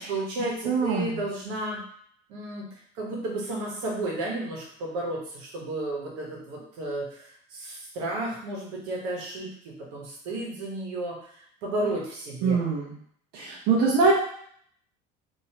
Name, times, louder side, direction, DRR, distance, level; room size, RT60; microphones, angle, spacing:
voice 1, 0.0-1.8 2.3-2.7 2.9-12.6, right 1 dB, 90° right, -3 dB, 1.2 m, -33 dB
voice 2, 0.6-1.2 12.4-12.9 13.3-14.1, right 4 dB, 70° right, -6 dB, 0.8 m, -23 dB
3.1 x 2.7 x 2.9 m, 0.62 s
cardioid pair, 145°, 17 cm